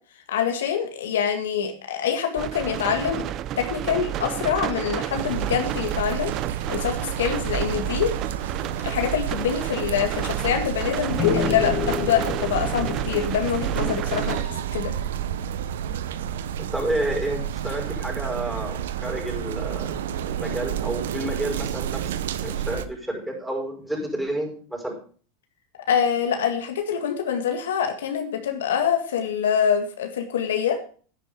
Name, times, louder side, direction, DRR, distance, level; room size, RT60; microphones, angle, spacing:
voice 1, 0.3-3.3 3.6-6.3 6.7-8.1 8.8-14.9 25.9-30.8, left 8 dB, 85° left, 5 dB, 1.9 m, -25 dB
sound 1, 2.4-14.4, right 12 dB, 45° right, 0.5 m, -31 dB
sound 2, 5.1-22.9, right 9 dB, 80° right, 0.8 m, -30 dB
sound 3, 11.2-14.8, left 10 dB, 40° left, 0.7 m, -31 dB
voice 2, 16.6-20.0 20.3-22.1 22.4-25.0, right 1 dB, 5° right, 1 dB, 5.7 m, -30 dB
10.5 x 10.0 x 5.1 m, 0.42 s
hypercardioid pair, 105°, 0 cm